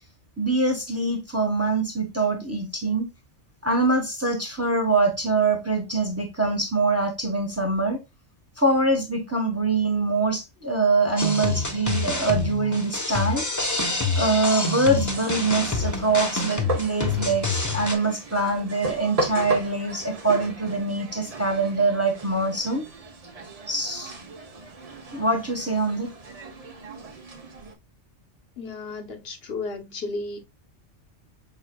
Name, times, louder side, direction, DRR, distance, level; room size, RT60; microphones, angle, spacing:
voice 1, 0.4-3.1 3.6-8.0 8.6-13.6 14.2-22.8 23.7-24.2 25.1-26.1, right 3 dB, 15° right, 1.1 m, -24 dB
sound 1, 11.2-17.9, left 3 dB, 15° left, 0.9 m, -27 dB
sound 2, 15.1-27.7, right 2 dB, 35° right, 0.8 m, -36 dB
voice 2, 28.6-30.4, left 3 dB, 60° left, 1.2 m, -33 dB
6.0 x 4.0 x 2.2 m
omnidirectional pair, 1.2 m